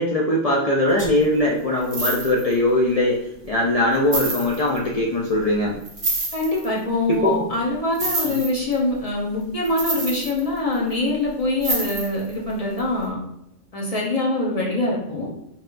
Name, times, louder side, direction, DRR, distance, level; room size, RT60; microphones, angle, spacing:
voice 1, 0.0-3.2 3.5-5.7 7.2-7.4, left 1 dB, 65° left, -4 dB, 0.3 m, -20 dB
sound 1, 1.0-1.2 1.8-2.5 3.3-3.4 4.0-4.8 5.8-6.7 8.0-8.8 9.6-10.9 11.6-12.3 12.8-12.9, right 2 dB, 40° right, 0.8 m, -27 dB
voice 2, 6.3-13.2 13.7-15.3, left 2 dB, 30° left, -3 dB, 0.8 m, -24 dB
4.1 x 3.4 x 2.5 m, 0.81 s
omnidirectional pair, 1.4 m